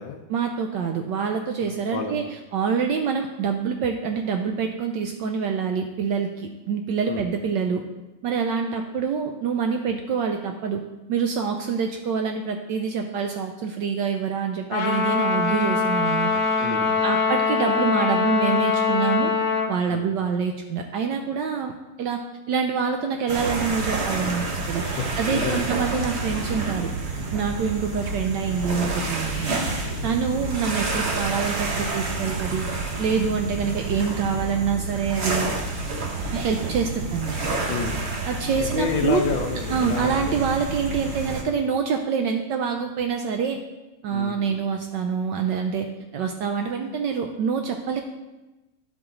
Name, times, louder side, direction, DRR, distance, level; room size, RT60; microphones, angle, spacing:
voice 1, 0.3-2.2 2.5-7.8 8.2-10.8 11.1-16.3 17.0-19.3 19.7-21.7 22.0-22.2 22.5-24.8 25.2-26.9 27.3-29.6 30.0-32.6 33.0-35.5 36.3-37.4 38.3-39.2 39.7-43.6 44.0-45.9 46.1-48.0, right 6 dB, 75° right, 4 dB, 1.1 m, -26 dB
voice 2, 1.6-2.1 7.0-7.3 16.6-17.1 19.9-20.1 25.0-25.7 27.5-27.7 37.7-38.0 38.6-40.4 44.1-44.7, left 6 dB, 70° left, 4 dB, 1.4 m, -30 dB
Trumpet, 14.7-19.7, left 5 dB, 85° left, 2.0 m, -23 dB
sound 1, 23.3-41.4, right 3 dB, 45° right, 0.8 m, -29 dB
11.5 x 4.9 x 3.9 m, 1.1 s
omnidirectional pair, 2.4 m